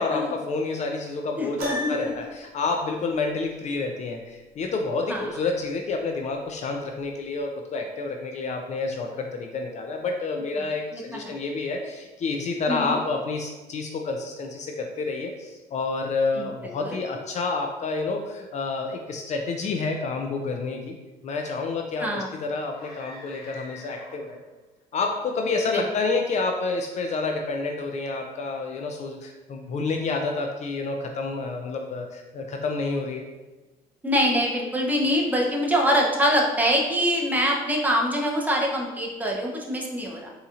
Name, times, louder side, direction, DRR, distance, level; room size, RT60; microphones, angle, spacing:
voice 1, 0.0-20.9 21.2-24.4 24.9-33.2, left 3 dB, 45° left, 3 dB, 0.4 m, -29 dB
voice 2, 1.4-1.9 5.1-5.3 10.9-11.4 12.7-13.0 16.3-16.5 16.8-17.0 22.0-22.3 25.7-25.8 34.0-40.3, equal, 10° right, -2 dB, 0.6 m, -24 dB
Piano, 1.6-2.4, equal, 60° right, 0.9 m, -31 dB
sound 1, 22.7-24.5, left 2 dB, 70° left, 0.9 m, -46 dB
3.9 x 2.8 x 2.4 m, 1.2 s
cardioid pair, 110°, 17 cm